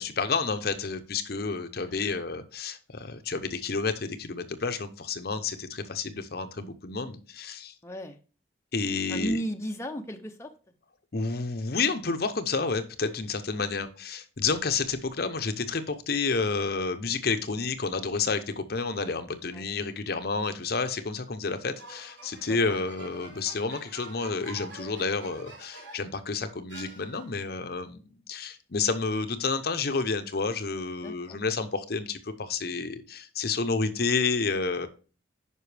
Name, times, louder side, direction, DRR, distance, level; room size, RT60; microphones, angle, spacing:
voice 1, 0.0-7.7 8.7-9.4 11.1-34.9, left 4 dB, 55° left, 9 dB, 0.7 m, -30 dB
voice 2, 7.8-8.2 9.1-10.5 13.6-13.7 19.5-19.6 22.5-22.6 31.0-31.4, equal, 15° left, 4 dB, 0.5 m, -35 dB
sound 1, 21.8-26.2 26.7-27.5, right 2 dB, 70° right, 3.0 m, -46 dB
9.7 x 5.2 x 3.3 m, 0.37 s
head